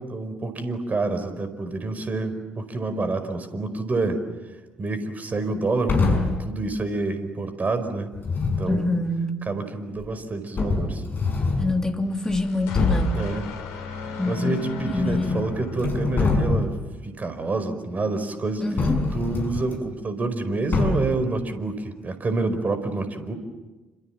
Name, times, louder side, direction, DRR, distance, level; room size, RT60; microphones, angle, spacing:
voice 1, 0.0-4.2 4.8-8.1 8.6-8.9 9.5-11.0 13.1-13.5 14.3-16.8 17.0-18.6 19.1-23.3, right 3 dB, 35° right, 10 dB, 4.9 m, -28 dB
sound 1, 5.9-6.5 8.1-8.8 10.0-10.1 10.6-11.8 12.3-12.4 12.7-13.2 14.8-15.4 15.7-16.9 18.8-19.7 20.7-21.2, left 3 dB, 45° left, 6.6 m, -24 dB
voice 2, 8.7-9.5 11.6-13.3 14.2-15.5 18.6-19.1, left 2 dB, 15° left, 4 dB, 3.3 m, -26 dB
sound 2, 12.0-16.6, left 4 dB, 70° left, 3.5 m, -36 dB
28.5 x 26.5 x 7.5 m, 1.2 s
figure-of-eight pair, 45°, 5 cm